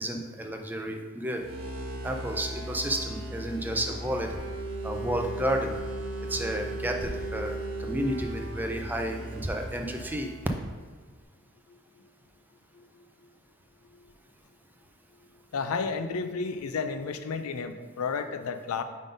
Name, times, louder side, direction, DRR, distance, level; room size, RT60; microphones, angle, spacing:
voice 1, 0.0-1.4 2.0-4.4 4.8-5.7 6.3-10.3, right 1 dB, 10° right, 3 dB, 0.4 m, -31 dB
sound 1, 1.3-10.8, right 1 dB, 70° right, 1.2 m, -37 dB
voice 2, 15.5-18.8, left 5 dB, 85° left, 9 dB, 0.5 m, -32 dB
5.3 x 3.8 x 5.2 m, 1.4 s
head